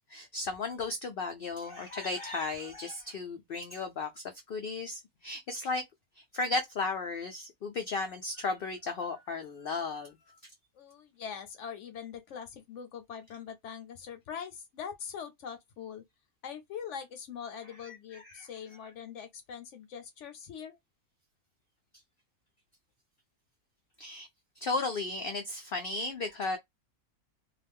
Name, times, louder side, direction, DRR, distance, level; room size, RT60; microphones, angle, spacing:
voice 1, 0.1-5.8 6.2-10.2 17.8-18.5 24.0-24.3 24.6-26.6, left 3 dB, 85° left, 0.4 m, -35 dB
voice 2, 10.8-16.0 16.4-20.8, left 7 dB, 65° left, 0.8 m, -43 dB
2.4 x 2.1 x 3.4 m
omnidirectional pair, 1.5 m